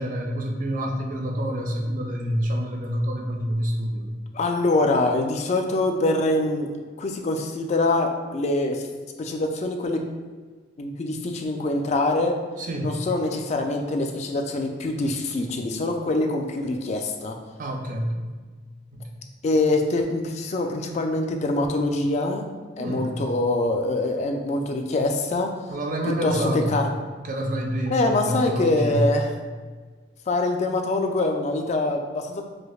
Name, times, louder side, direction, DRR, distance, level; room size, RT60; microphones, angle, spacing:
voice 1, 0.0-4.1 12.6-13.1 17.6-18.2 18.9-19.1 22.8-23.3 25.7-26.8 27.2-29.1, equal, 45° right, 2 dB, 0.4 m, -27 dB
voice 2, 4.3-6.7 7.0-8.9 9.2-10.0 10.8-12.3 12.8-17.4 19.4-22.4 22.8-25.5 26.2-26.9 27.9-29.3 30.3-32.4, left 2 dB, 35° left, 3 dB, 0.3 m, -24 dB
4.9 x 2.0 x 2.3 m, 1.5 s
head